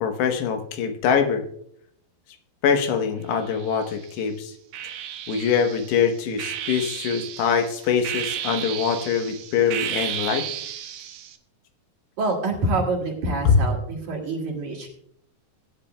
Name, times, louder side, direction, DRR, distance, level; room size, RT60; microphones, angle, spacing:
voice 1, 0.0-1.4 2.6-4.5 5.3-10.5 13.5-13.6, left 7 dB, 85° left, 6 dB, 3.3 m, -23 dB
sound 1, 3.4-4.1 4.7-11.4, right 10 dB, 75° right, 2.1 m, -33 dB
voice 2, 12.2-14.9, right 2 dB, 50° right, -1 dB, 3.4 m, -26 dB
19.0 x 10.0 x 2.2 m, 0.69 s
omnidirectional pair, 4.7 m